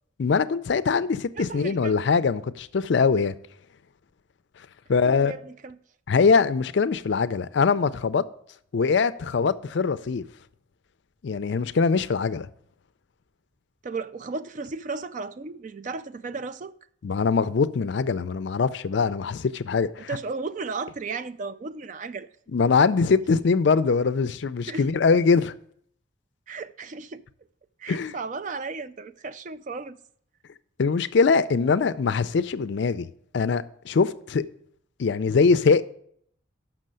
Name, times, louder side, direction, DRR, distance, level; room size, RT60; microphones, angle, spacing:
voice 1, 0.2-3.4 4.9-5.3 6.1-8.3 8.7-10.2 11.2-12.5 17.0-20.1 22.5-25.5 27.9-28.1 30.8-33.1 33.3-34.4 35.0-35.8, left 5 dB, 60° left, 0.4 m, -22 dB
voice 2, 1.4-1.9 5.0-5.8 13.8-16.7 20.0-22.3 24.7-24.8 26.5-27.2 27.8-30.0, right 4 dB, 40° right, 0.3 m, -35 dB
6.6 x 6.1 x 7.5 m
head